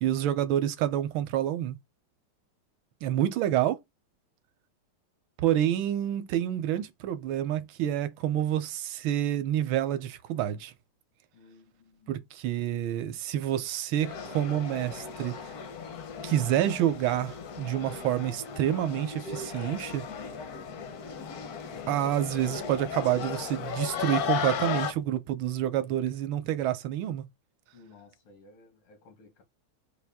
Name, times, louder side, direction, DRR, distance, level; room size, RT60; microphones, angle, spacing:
voice 1, 0.0-1.8 3.0-3.8 5.4-10.7 12.1-15.4 16.2-20.0 21.9-27.2, right 12 dB, 75° right, 1.4 m, -28 dB
voice 2, 11.3-12.2 27.7-29.4, left 3 dB, 90° left, 2.3 m, -56 dB
sound 1, 14.0-24.9, left 7 dB, 65° left, 0.9 m, -36 dB
4.5 x 2.5 x 3.4 m
omnidirectional pair, 2.3 m